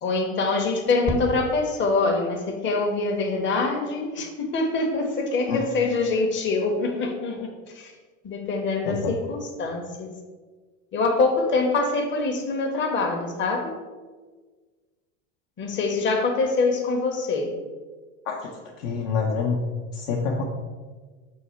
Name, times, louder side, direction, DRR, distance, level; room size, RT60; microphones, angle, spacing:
voice 1, 0.0-7.9 8.2-10.1 10.9-13.7 15.6-17.5, left 3 dB, 30° left, 2 dB, 0.8 m, -24 dB
voice 2, 18.2-19.6 19.9-20.4, left 5 dB, 60° left, -1 dB, 0.8 m, -27 dB
5.5 x 2.2 x 4.3 m, 1.4 s
hypercardioid pair, 85°, 41 cm